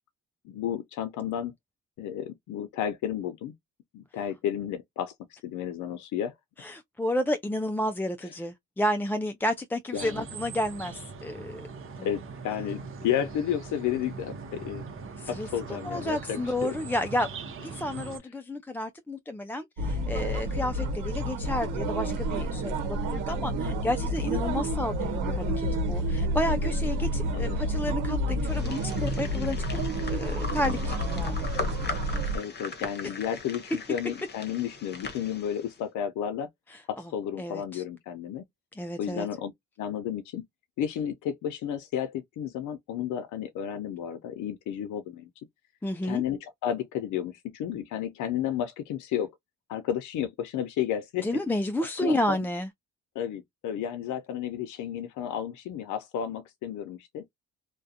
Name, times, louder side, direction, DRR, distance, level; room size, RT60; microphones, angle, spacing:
voice 1, 0.4-1.5 2.0-3.5 3.9-6.3 8.2-8.3 9.9-10.2 12.0-14.8 15.3-16.8 24.3-24.6 27.3-27.6 32.3-36.5 36.9-38.4 39.0-39.5 39.8-40.4 40.8-45.3 46.0-49.3 49.7-51.3 51.8-52.5 53.2-57.2, left 9 dB, 75° left, 0.5 m, -32 dB
voice 2, 6.6-11.7 15.2-15.5 15.8-17.3 17.6-29.8 30.1-31.5 36.7-36.8 37.4-37.8 38.8-39.3 45.8-46.2 51.2-52.7, left 1 dB, 5° left, 0.3 m, -31 dB
sound 1, 9.9-18.2, right 5 dB, 45° right, 0.8 m, -41 dB
sound 2, 19.8-32.4, equal, 85° right, 0.9 m, -29 dB
sound 3, 28.5-35.8, left 3 dB, 35° left, 0.8 m, -39 dB
2.4 x 2.1 x 2.6 m
cardioid pair, 90°, 30 cm